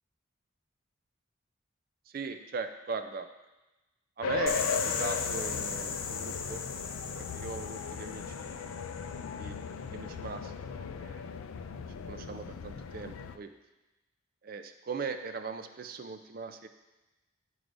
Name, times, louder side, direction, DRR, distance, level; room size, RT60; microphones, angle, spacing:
voice 1, 2.1-3.3 4.2-8.6 9.4-9.6 9.9-11.2 11.7-13.5 14.4-16.7, right 4 dB, 45° right, 8 dB, 0.4 m, -39 dB
sound 1, 4.2-13.4, left 6 dB, 85° left, 0.4 m, -37 dB
sound 2, 4.5-9.2, left 5 dB, 45° left, 0.6 m, -37 dB
11.0 x 4.7 x 2.6 m, 1.1 s
head